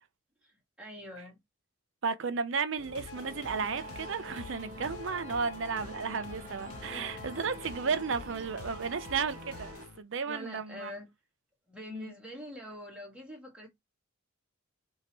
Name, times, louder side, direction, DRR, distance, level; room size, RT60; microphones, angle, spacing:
voice 1, 0.4-1.4 6.7-7.1 10.2-11.1 11.7-13.7, left 1 dB, 5° right, 1.6 m, -45 dB
voice 2, 2.0-10.9 11.9-12.1, right 5 dB, 60° right, 0.5 m, -34 dB
sound 1, 2.8-10.0, left 5 dB, 80° left, 0.4 m, -48 dB
Wind instrument woodwind instrument, 3.1-7.8, left 2 dB, 25° left, 0.8 m, -50 dB
sound 2, 3.2-9.8, right 2 dB, 40° right, 1.0 m, -46 dB
5.2 x 2.8 x 3.0 m
head